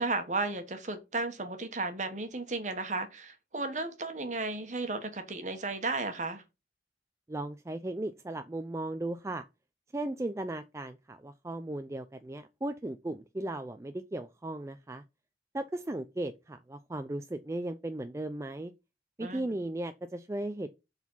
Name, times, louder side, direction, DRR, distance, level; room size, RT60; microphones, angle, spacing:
voice 1, 0.0-6.4 19.2-19.5, right 3 dB, 40° right, 1.2 m, -34 dB
voice 2, 7.3-9.4 9.9-15.0 15.5-18.7 19.2-20.7, right 1 dB, 15° right, 0.4 m, -36 dB
7.2 x 4.0 x 5.5 m
head